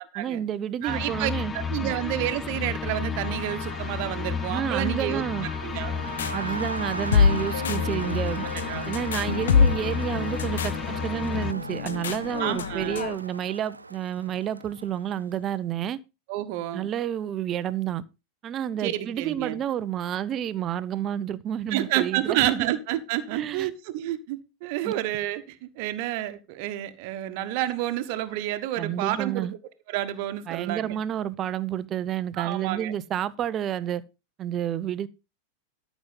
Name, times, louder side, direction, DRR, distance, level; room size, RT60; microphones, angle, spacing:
voice 1, 0.1-1.5 1.8-1.9 4.5-5.5 6.3-8.4 8.8-16.0 16.7-18.0 18.4-22.7 23.3-23.7 24.8-24.9 28.8-29.5 30.5-34.0 34.4-35.1, right 10 dB, 30° right, 0.8 m, -30 dB
voice 2, 0.8-5.2 5.6-6.0 8.7-8.9 12.4-13.0 16.3-16.9 18.8-19.6 21.7-29.5 29.9-31.0 32.4-32.9, right 14 dB, 45° right, 1.3 m, -29 dB
sound 1, 0.9-11.5, left 6 dB, 20° left, 0.6 m, -32 dB
Crowd, 2.9-15.4, right 3 dB, 80° right, 0.6 m, -39 dB
sound 2, 5.7-13.2, left 6 dB, 65° left, 1.1 m, -27 dB
13.0 x 6.3 x 5.5 m
figure-of-eight pair, 90°, 0 cm